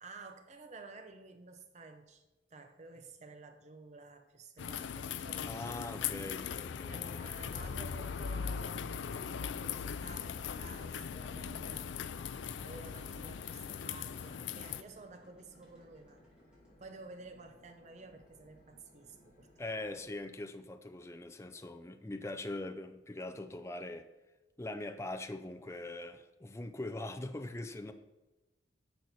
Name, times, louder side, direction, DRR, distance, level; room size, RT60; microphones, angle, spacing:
voice 1, 0.0-6.0 6.9-9.1 9.4-16.3 16.8-19.8, right 3 dB, 40° right, 0.7 m, -52 dB
sound 1, 4.6-14.8, left 7 dB, 80° left, 0.4 m, -39 dB
voice 2, 5.4-7.3 19.6-24.1 24.6-27.9, left 2 dB, 15° left, 0.5 m, -42 dB
sound 2, 5.9-20.1, left 1 dB, 45° left, 1.6 m, -64 dB
sound 3, 12.8-18.6, equal, 5° right, 2.5 m, -64 dB
10.5 x 6.3 x 4.2 m
head